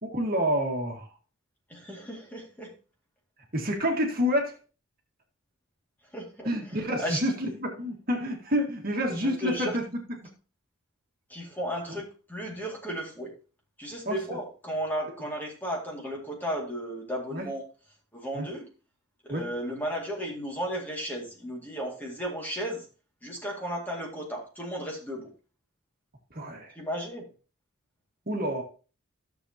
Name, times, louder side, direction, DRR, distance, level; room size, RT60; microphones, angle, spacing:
voice 1, 0.0-1.1 3.5-4.6 6.5-9.8 10.2-10.3 14.1-14.2 17.3-17.5 18.3-18.5 19.3-19.5 26.3-26.8 28.3-28.6, equal, 45° right, 1 dB, 1.8 m, -28 dB
voice 2, 1.7-2.7 6.1-7.2 9.1-9.8 11.3-13.3 13.8-17.6 18.1-18.7 19.2-22.9 23.2-25.3 26.7-27.3, equal, 10° left, -1 dB, 2.1 m, -34 dB
13.5 x 7.1 x 2.8 m, 0.36 s
head